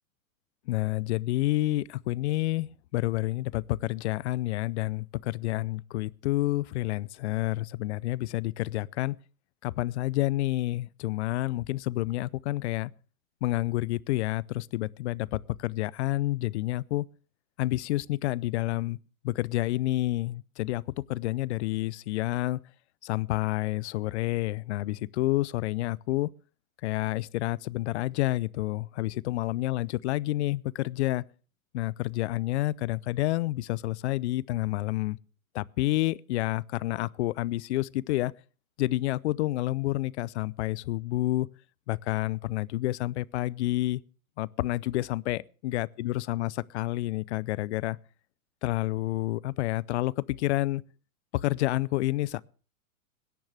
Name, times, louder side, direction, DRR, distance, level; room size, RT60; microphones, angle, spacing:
voice 1, 0.7-9.2 9.6-12.9 13.4-17.1 17.6-19.0 19.2-22.6 23.0-26.3 26.8-31.2 31.7-35.2 35.5-38.3 38.8-41.5 41.9-44.0 44.4-48.0 48.6-50.8 51.3-52.4, left 17 dB, 55° left, 0.6 m, -29 dB
21.5 x 10.5 x 3.4 m
hypercardioid pair, 130°, 41 cm